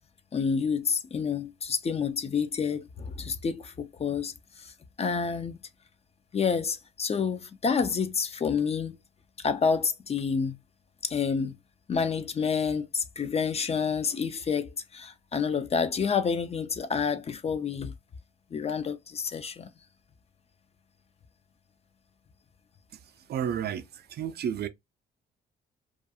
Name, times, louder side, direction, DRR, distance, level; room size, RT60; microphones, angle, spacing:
voice 1, 0.3-5.6 6.3-9.0 9.4-10.6 11.0-11.6 11.9-17.9 18.5-19.7, left 6 dB, 30° left, 0.4 m, -29 dB
voice 2, 22.9-24.7, right 9 dB, 55° right, 0.4 m, -32 dB
2.4 x 2.3 x 2.6 m
cardioid pair, 90°, 20 cm